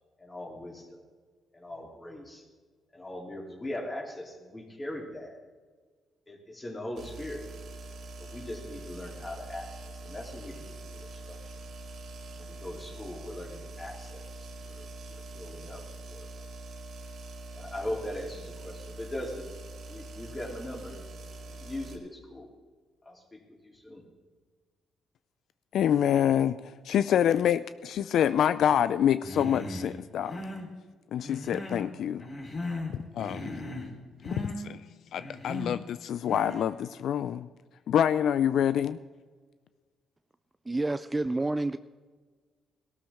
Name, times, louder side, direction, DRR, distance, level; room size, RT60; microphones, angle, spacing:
voice 1, 0.2-1.0 1.5-2.4 2.9-5.4 6.3-7.5 8.1-11.5 12.4-16.3 17.5-19.4 19.9-21.0 21.4-22.5 23.0-24.0, left 1 dB, 20° left, 0 dB, 3.1 m, -40 dB
sound 1, 7.0-22.0, right 2 dB, 65° right, 2.3 m, -44 dB
voice 2, 25.7-26.6 26.8-30.4 31.1-32.3 33.2-33.5 34.4-34.8 35.1-37.5 37.9-39.0, left 9 dB, 70° left, 14 dB, 0.3 m, -26 dB
Human voice, 29.2-29.9 30.2-30.7 31.2-31.9 32.2-32.9 33.2-33.9 34.2-34.6 35.2-35.8 36.2-36.7, left 2 dB, 40° left, 3.5 m, -37 dB
voice 3, 40.7-41.8, right 2 dB, 20° right, 12 dB, 0.3 m, -29 dB
18.0 x 12.5 x 3.5 m, 1.5 s
cardioid pair, 90°, 0 cm